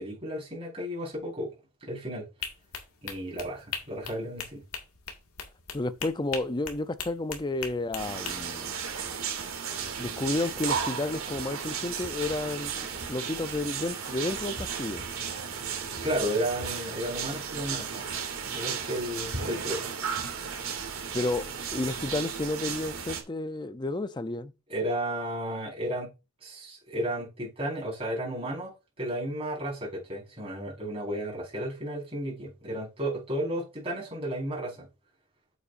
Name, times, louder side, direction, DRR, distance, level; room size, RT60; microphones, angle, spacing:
voice 1, 0.0-1.5 1.8-2.2 3.0-4.6 16.0-18.1 18.5-19.9 24.7-26.1 26.4-34.9, right 1 dB, 25° right, 4.8 m, -33 dB
sound 1, 2.4-8.3, left 6 dB, 90° left, 2.0 m, -39 dB
voice 2, 5.7-8.7 10.0-15.1 21.1-24.5, left 2 dB, 20° left, 0.5 m, -31 dB
sound 2, 8.0-23.2, right 6 dB, 70° right, 2.5 m, -34 dB
8.4 x 8.3 x 2.6 m
head